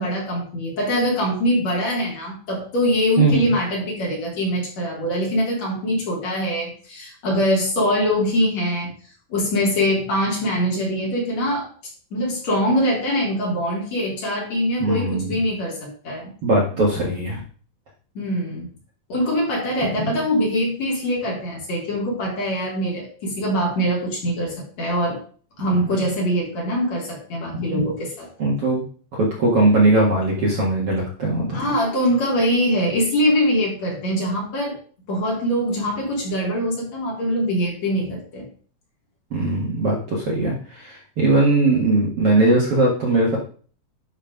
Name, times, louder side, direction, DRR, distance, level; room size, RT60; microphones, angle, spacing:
voice 1, 0.0-8.9 9.3-11.7 12.1-16.3 16.7-16.8 18.2-18.7 19.1-25.2 25.6-28.3 31.5-34.8 35.1-38.5, equal, 45° left, -3 dB, 4.1 m, -23 dB
voice 2, 3.2-3.5 14.8-15.4 16.4-17.4 20.0-20.1 27.5-27.6 28.4-28.8 29.1-31.6 39.3-43.4, right 2 dB, 50° right, -3 dB, 2.1 m, -20 dB
11.0 x 4.4 x 5.1 m, 0.43 s
omnidirectional pair, 4.3 m